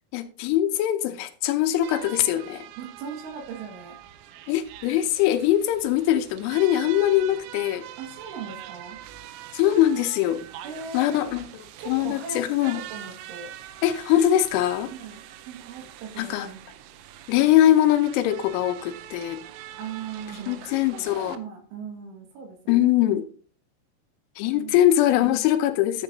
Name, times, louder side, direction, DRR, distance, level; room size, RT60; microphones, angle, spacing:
voice 1, 0.1-2.7 4.5-7.8 9.5-10.5 10.9-11.5 11.9-12.8 13.8-14.9 16.2-16.5 17.3-19.4 20.5-21.4 22.7-23.3 24.4-26.0, left 12 dB, 80° left, 8 dB, 2.9 m, -22 dB
sound 1, 1.8-21.4, right 12 dB, 85° right, 3.4 m, -44 dB
voice 2, 2.8-4.0 8.0-9.0 10.6-11.2 11.8-13.5 14.9-15.2 15.5-16.6 19.8-22.9 24.5-24.8, right 6 dB, 70° right, 2 dB, 4.2 m, -39 dB
10.5 x 8.2 x 2.7 m, 0.40 s
omnidirectional pair, 5.9 m